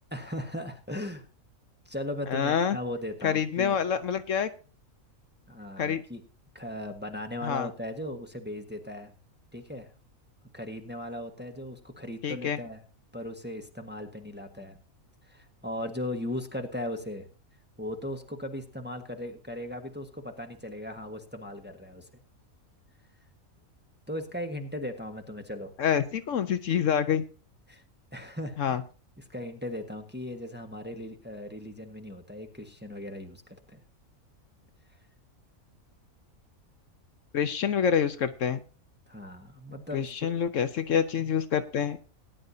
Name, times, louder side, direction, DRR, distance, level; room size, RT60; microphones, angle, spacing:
voice 1, 0.1-1.2 1.8-3.8 5.5-6.2 6.5-9.1 9.5-9.9 10.5-12.8 13.1-14.8 15.3-17.3 17.8-22.1 24.1-25.7 27.7-27.8 28.1-28.8 29.2-33.8 39.1-40.1, left 1 dB, 10° right, 5 dB, 1.2 m, -37 dB
voice 2, 2.3-2.8 3.2-4.5 5.8-6.0 7.4-7.7 12.2-12.6 25.8-27.2 28.6-28.8 37.3-38.6 39.9-42.0, left 8 dB, 65° left, 11 dB, 1.1 m, -27 dB
18.5 x 10.0 x 2.7 m, 0.35 s
omnidirectional pair, 1.5 m